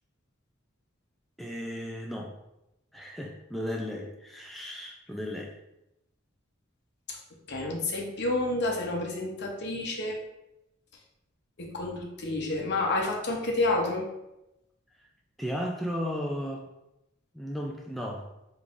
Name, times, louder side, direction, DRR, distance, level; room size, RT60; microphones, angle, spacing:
voice 1, 1.4-2.3 2.9-5.5 15.4-16.7 17.3-18.3, equal, ahead, -1 dB, 0.3 m, -35 dB
voice 2, 7.5-10.2 11.6-14.1, left 2 dB, 55° left, 0 dB, 0.8 m, -29 dB
5.1 x 3.1 x 2.5 m, 0.88 s
head